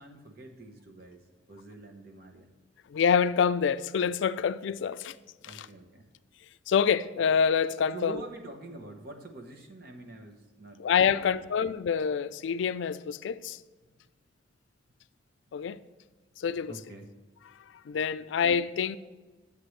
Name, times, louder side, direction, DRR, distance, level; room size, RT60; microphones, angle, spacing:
voice 1, 0.0-2.5 5.4-6.0 7.9-11.5 16.7-17.1, right 2 dB, 55° right, 1.0 m, -46 dB
voice 2, 2.9-5.1 5.4-5.7 6.7-8.2 10.8-13.6 15.5-15.8 16.4-16.7 17.9-19.0, left 7 dB, 80° left, 0.3 m, -26 dB
11.5 x 8.3 x 3.2 m
head